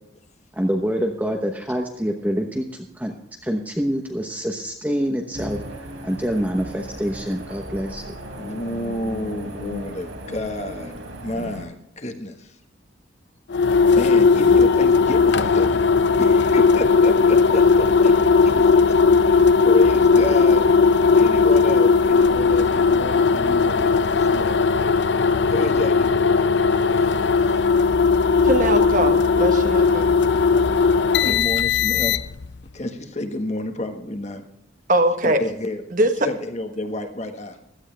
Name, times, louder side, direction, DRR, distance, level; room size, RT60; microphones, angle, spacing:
voice 1, 0.6-2.7 3.0-3.1 3.4-5.6 6.0-8.0, equal, 10° right, 1.0 m, -25 dB
sound 1, 5.3-11.6, equal, 75° right, 3.3 m, -36 dB
voice 2, 8.4-11.0 11.2-12.5 13.9-15.8 16.2-18.1 18.4-20.6 21.1-24.7 25.5-26.1 27.0-27.1 31.2-32.2 32.7-34.4 35.2-35.8 36.2-37.6, left 1 dB, 35° left, 1.5 m, -30 dB
sound 2, 13.5-32.5, left 5 dB, 65° left, 0.6 m, -17 dB
voice 3, 28.4-30.1 34.9-35.4 35.9-36.3, right 1 dB, 40° right, 1.3 m, -21 dB
16.0 x 12.5 x 3.4 m
head